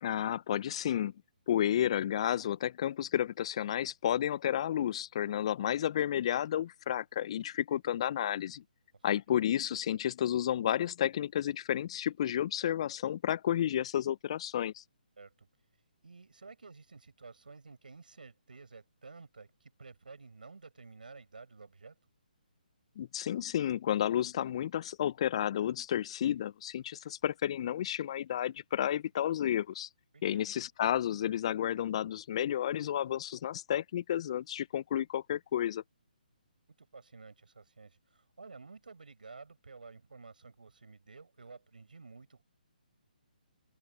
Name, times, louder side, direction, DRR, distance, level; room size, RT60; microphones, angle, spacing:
voice 1, 0.0-1.1 1.5-8.6 9.0-14.8 23.0-29.9 30.2-35.8, left 10 dB, 40° left, 1.0 m, -31 dB
voice 2, 8.9-9.4 15.2-15.5 16.0-21.9 30.1-30.5 36.8-42.4, right 4 dB, 70° right, 6.5 m, -52 dB
figure-of-eight pair, 140°, 5 cm